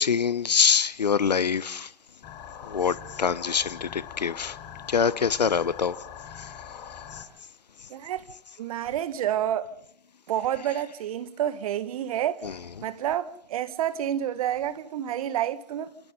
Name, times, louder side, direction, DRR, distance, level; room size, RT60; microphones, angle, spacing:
voice 1, 0.0-1.9 2.6-4.6 4.9-6.0 6.4-6.5 7.1-7.3 12.4-12.5, left 6 dB, 85° left, 1.0 m, -25 dB
sound 1, 2.2-7.2, left 9 dB, 35° left, 5.3 m, -42 dB
voice 2, 7.9-8.2 8.6-9.7 10.3-12.5 12.8-15.9, right 11 dB, 60° right, 1.8 m, -29 dB
29.5 x 28.5 x 3.9 m
hypercardioid pair, 110°, 21 cm